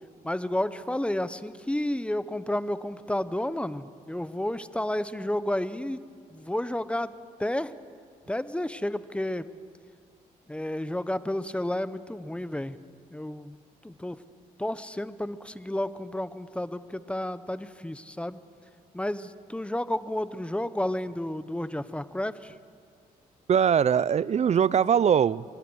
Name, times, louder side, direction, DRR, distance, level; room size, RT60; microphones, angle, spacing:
voice 1, 0.2-6.0 6.3-7.1 7.4-7.7 8.3-9.5 10.5-12.8 13.1-13.6 13.8-14.2 14.6-18.4 18.9-22.5, left 1 dB, 5° left, 14 dB, 1.0 m, -31 dB
voice 2, 23.5-25.6, right 8 dB, 45° right, 21 dB, 0.5 m, -22 dB
25.0 x 21.0 x 6.4 m, 2.1 s
cardioid pair, 75°, 16 cm